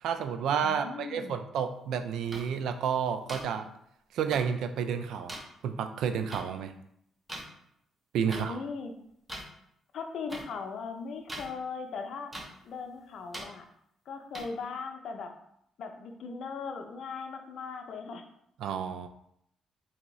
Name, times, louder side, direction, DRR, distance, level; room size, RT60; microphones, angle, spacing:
voice 1, 0.0-3.7 4.1-5.4 5.6-6.7 8.1-8.6 18.6-19.1, right 7 dB, 80° right, 8 dB, 0.3 m, -30 dB
voice 2, 0.6-1.4 8.3-8.9 9.9-12.3 12.6-13.6 14.1-15.3 15.8-18.2, left 5 dB, 65° left, 5 dB, 0.5 m, -39 dB
sound 1, 2.3-2.4 3.3-3.4 4.3-4.4 5.3-5.4 6.3-6.4 7.3-7.4 8.3-8.4 9.3-9.4 10.3-10.4 11.3-11.5 12.3-12.4 13.3-13.4 14.3-14.4, right 1 dB, 15° right, 0.8 m, -39 dB
3.4 x 2.7 x 3.1 m, 0.73 s
cardioid pair, 90°, 0 cm